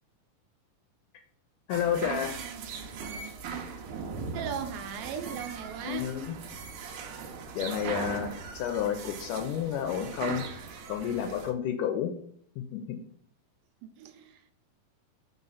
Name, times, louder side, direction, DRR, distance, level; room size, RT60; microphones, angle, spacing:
voice 1, 1.7-2.4 5.8-6.4 7.6-10.4 10.9-12.1 12.7-13.0, left 9 dB, 80° left, 1.9 m, -30 dB
sound 1, 1.7-11.5, right 5 dB, 70° right, 2.1 m, -39 dB
voice 2, 4.3-6.2 13.8-14.5, right 8 dB, 90° right, 2.4 m, -38 dB
5.0 x 4.1 x 5.5 m
omnidirectional pair, 4.2 m